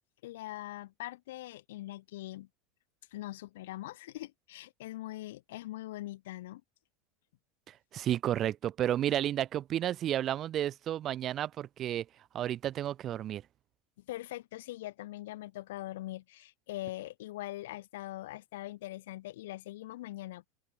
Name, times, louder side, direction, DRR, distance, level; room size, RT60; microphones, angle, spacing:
voice 1, 0.2-2.5 3.1-6.6 14.0-20.5, left 16 dB, 70° left, 4.9 m, -42 dB
voice 2, 7.7-12.0 12.3-13.4, right 11 dB, 40° right, 4.2 m, -32 dB
hypercardioid pair, 85°, 0 cm